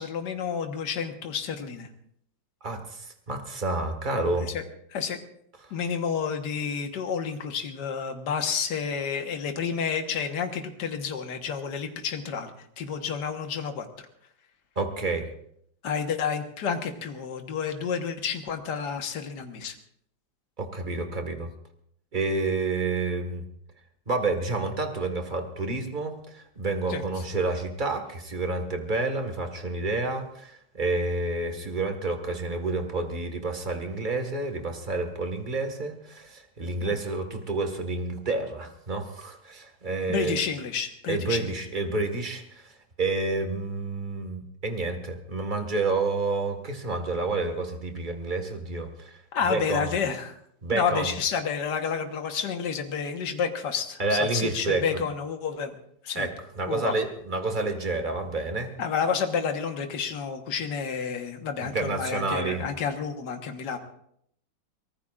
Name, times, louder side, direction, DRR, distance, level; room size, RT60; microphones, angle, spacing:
voice 1, 0.0-1.9 4.4-4.6 4.9-5.2 5.7-12.5 12.8-14.1 15.8-19.8 26.9-27.0 36.8-37.0 40.1-41.5 49.3-50.4 50.7-55.8 56.0-56.3 56.7-56.9 58.8-63.8, left 6 dB, 70° left, 5 dB, 1.9 m, -30 dB
voice 2, 2.6-4.5 14.7-15.3 20.6-21.5 22.1-23.4 24.1-40.3 41.1-42.7 43.0-49.2 49.5-49.9 50.6-51.1 54.0-55.0 56.1-58.7 61.6-62.6, right 3 dB, 25° right, 6 dB, 1.7 m, -29 dB
24.5 x 19.0 x 2.5 m, 0.69 s
omnidirectional pair, 2.0 m